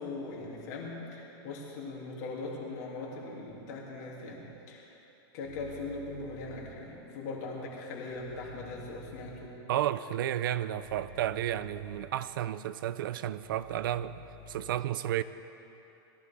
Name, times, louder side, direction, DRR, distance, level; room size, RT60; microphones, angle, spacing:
voice 1, 0.0-4.9 5.3-9.5, left 3 dB, 40° left, -3 dB, 2.8 m, -40 dB
sound 1, 5.4-6.7 8.1-9.4 10.7-12.1 13.4-14.7, left 2 dB, 65° left, 2.1 m, -51 dB
voice 2, 9.7-14.1 14.5-15.2, right 12 dB, 55° right, 15 dB, 0.5 m, -32 dB
21.0 x 15.0 x 3.6 m, 2.9 s
supercardioid pair, 175°, 13 cm